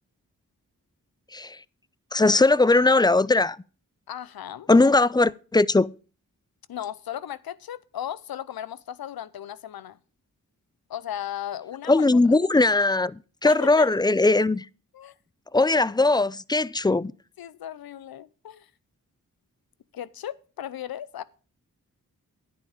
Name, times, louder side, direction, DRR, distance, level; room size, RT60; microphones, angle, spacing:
voice 1, 2.1-3.6 4.7-5.9 11.9-14.7 15.5-17.1, left 2 dB, 10° left, 0.4 m, -20 dB
voice 2, 4.1-4.7 6.7-10.0 10.9-12.0 13.4-13.9 14.9-15.2 17.4-18.7 19.9-21.2, left 11 dB, 80° left, 0.7 m, -36 dB
10.5 x 9.0 x 5.0 m
cardioid pair, 45°, 36 cm